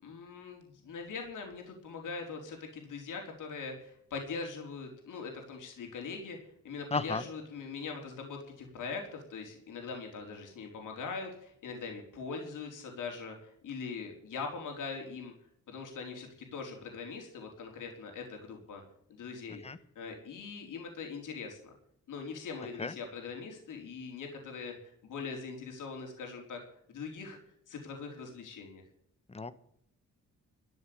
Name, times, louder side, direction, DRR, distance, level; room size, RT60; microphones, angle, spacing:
voice 1, 0.0-15.3 15.7-18.8 19.1-21.7 22.1-26.6 26.9-27.4 27.7-28.8, left 4 dB, 75° left, 2 dB, 3.8 m, -42 dB
voice 2, 6.9-7.2 19.6-19.8 22.8-22.9 29.3-29.6, left 3 dB, 20° left, 14 dB, 1.0 m, -33 dB
13.0 x 9.4 x 8.6 m, 0.72 s
wide cardioid pair, 140°, 31 cm